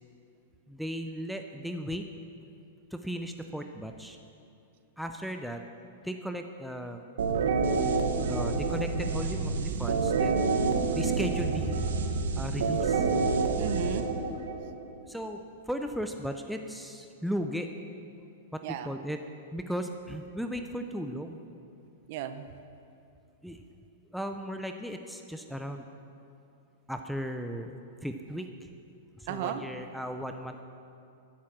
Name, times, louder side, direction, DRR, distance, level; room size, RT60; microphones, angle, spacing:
voice 1, 0.7-2.1 2.9-4.2 5.0-5.6 6.0-7.3 8.3-10.5 10.9-11.9 12.3-13.1 15.1-17.7 18.5-19.2 19.5-21.4 23.4-23.6 24.1-25.8 26.9-27.7 28.0-28.7 29.2-30.6, equal, ahead, 5 dB, 0.5 m, -36 dB
sound 1, 7.2-14.8, right 4 dB, 90° right, 1.7 m, -28 dB
sound 2, 10.5-12.3, right 5 dB, 70° right, 1.3 m, -35 dB
voice 2, 13.6-14.1 18.6-18.9 22.1-22.4 29.3-29.6, right 10 dB, 45° right, 10 dB, 0.9 m, -34 dB
13.5 x 11.5 x 7.3 m, 2.5 s
supercardioid pair, 165°, 0 cm